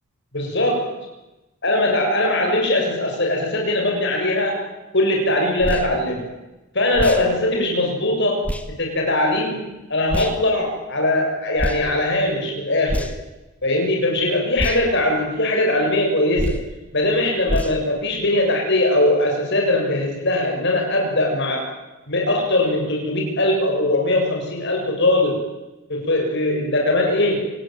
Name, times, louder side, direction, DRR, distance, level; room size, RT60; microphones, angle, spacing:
voice 1, 0.3-0.9 1.6-4.6 4.9-6.2 6.7-8.4 8.8-9.6 9.9-13.1 13.6-16.6 16.9-21.7 22.1-25.4 25.9-27.4, left 1 dB, 50° left, 1 dB, 6.9 m, -20 dB
sound 1, 5.6-5.9 6.9-7.2 8.4-8.7 10.1-10.4 11.6-11.8 12.9-13.3 14.6-14.8 16.4-16.7 17.5-17.8, equal, 5° left, 1.8 m, -25 dB
27.5 x 20.0 x 9.2 m, 1.1 s
head